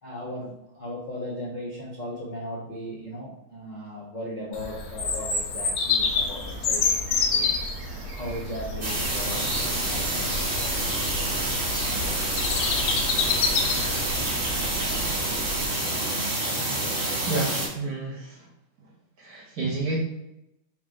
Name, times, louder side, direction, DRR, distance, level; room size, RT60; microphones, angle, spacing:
voice 1, 0.0-7.6 8.1-10.4, left 1 dB, 65° left, -6 dB, 0.4 m, -37 dB
Bird vocalization bird call bird song, 4.5-14.2, left 5 dB, 90° left, 1.7 m, -28 dB
sound 1, 6.0-15.7, right 2 dB, 85° right, 0.9 m, -38 dB
sound 2, 8.8-17.7, right 1 dB, 25° right, 0.9 m, -27 dB
voice 2, 17.3-18.5 19.2-20.0, right 3 dB, 50° right, -4 dB, 1.4 m, -30 dB
4.3 x 2.5 x 4.8 m, 0.87 s
omnidirectional pair, 2.3 m